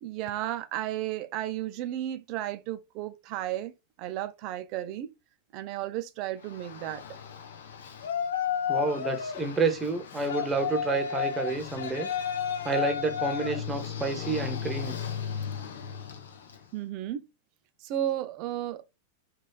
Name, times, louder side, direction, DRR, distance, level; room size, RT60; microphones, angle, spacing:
voice 1, 0.0-5.1 5.5-7.0 16.7-17.3 17.8-18.8, right 12 dB, 40° right, 0.3 m, -33 dB
Yell, 6.4-16.6, left 8 dB, 65° left, 0.5 m, -33 dB
voice 2, 8.7-12.1 12.6-14.9, right 4 dB, 15° right, 0.7 m, -29 dB
3.0 x 2.3 x 2.3 m
figure-of-eight pair, 90°, 0 cm